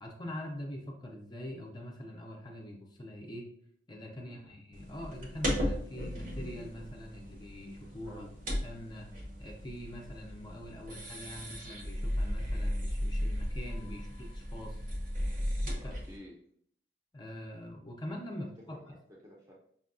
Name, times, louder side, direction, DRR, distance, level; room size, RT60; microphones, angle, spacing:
voice 1, 0.0-3.5 3.9-8.2 8.6-14.8 15.6-15.9 17.1-18.8, left 1 dB, 25° left, 1 dB, 0.5 m, -44 dB
voice 2, 4.2-4.5 8.1-8.3 15.7-16.3 18.9-19.5, left 1 dB, 20° right, -4 dB, 0.6 m, -52 dB
sound 1, 4.7-16.2, equal, 50° right, 0.8 m, -36 dB
5.4 x 2.2 x 2.5 m, 0.63 s
head